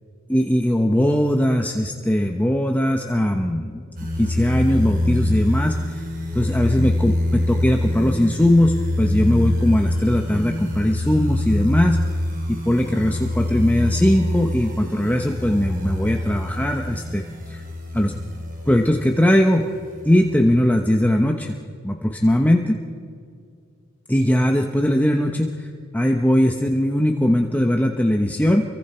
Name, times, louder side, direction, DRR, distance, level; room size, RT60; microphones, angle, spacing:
voice 1, 0.3-3.8 4.2-6.0 6.3-12.0 12.5-17.6 17.9-18.1 18.7-19.6 20.0-21.6 21.8-22.8 24.1-25.7 25.9-28.6, left 1 dB, 10° left, 2 dB, 1.0 m, -20 dB
sound 1, 4.0-19.2 19.8-20.8, left 1 dB, 45° right, 2.9 m, -25 dB
30.0 x 24.0 x 4.5 m, 2.2 s
head